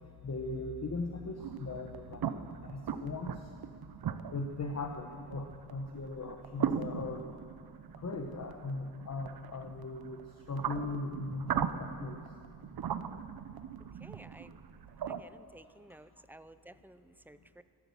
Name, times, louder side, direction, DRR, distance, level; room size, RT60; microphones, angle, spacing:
voice 1, 0.2-3.5 4.3-7.3 8.0-10.2 10.5-12.2, left 3 dB, 40° left, 4 dB, 0.9 m, -39 dB
sound 1, 1.4-15.2, right 8 dB, 60° right, 0.7 m, -39 dB
voice 2, 14.0-14.5 15.1-17.6, right 1 dB, 5° right, 12 dB, 0.3 m, -54 dB
15.0 x 12.5 x 6.9 m, 2.3 s
wide cardioid pair, 130°, 41 cm